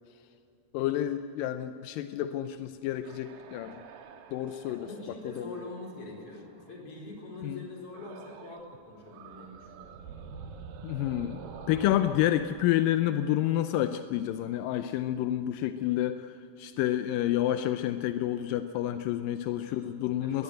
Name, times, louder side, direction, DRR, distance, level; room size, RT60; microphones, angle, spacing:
voice 1, 0.7-3.9 4.3-4.9 5.4-5.6 7.4-7.6 10.8-20.4, left 12 dB, 80° left, 9 dB, 2.0 m, -29 dB
sound 1, 2.7-6.8 7.9-8.7 9.0-13.8, right 6 dB, 65° right, 2.8 m, -48 dB
voice 2, 4.7-10.0 19.6-19.9 20.2-20.4, left 2 dB, 35° left, -1 dB, 5.0 m, -44 dB
22.0 x 20.0 x 7.8 m, 2.7 s
omnidirectional pair, 4.6 m